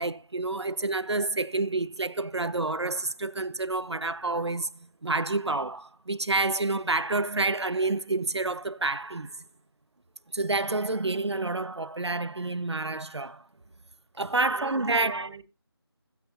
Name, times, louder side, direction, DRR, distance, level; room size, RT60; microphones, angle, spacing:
voice 1, 0.0-4.7 5.0-9.3 10.3-13.4 14.2-15.3, right 2 dB, 85° right, 1.3 m, -28 dB
voice 2, 14.3-15.4, right 5 dB, 15° right, 1.0 m, -43 dB
15.5 x 15.5 x 2.7 m
figure-of-eight pair, 170°, 14 cm